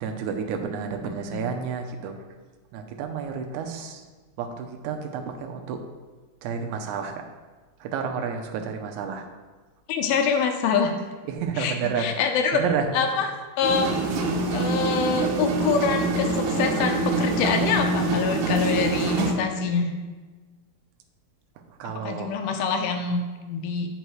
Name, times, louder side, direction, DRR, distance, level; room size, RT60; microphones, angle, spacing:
voice 1, 0.0-2.1 2.7-4.0 4.4-5.8 6.4-7.2 7.8-9.2 11.3-12.1 12.5-12.9 21.8-22.3, right 6 dB, 90° right, 4 dB, 1.7 m, -30 dB
voice 2, 1.1-1.4 9.9-10.9 11.6-12.6 12.9-13.3 13.6-13.9 14.5-19.9 21.9-23.2 23.5-23.9, left 5 dB, 85° left, 5 dB, 2.5 m, -25 dB
sound 1, 13.6-19.3, right 3 dB, 75° right, 1.8 m, -25 dB
8.2 x 5.5 x 3.1 m, 1.3 s
omnidirectional pair, 4.3 m